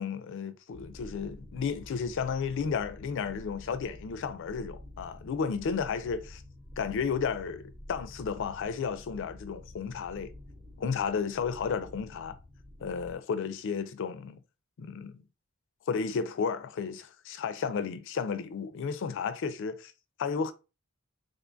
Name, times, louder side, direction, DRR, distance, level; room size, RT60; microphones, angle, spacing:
voice 1, 0.0-6.4 6.8-10.3 10.8-12.4 12.8-14.4 14.8-15.2 15.9-19.9 20.2-20.5, left 6 dB, 60° left, 0.4 m, -33 dB
sound 1, 0.7-13.1, left 1 dB, 25° right, 0.8 m, -49 dB
3.6 x 2.2 x 2.5 m
head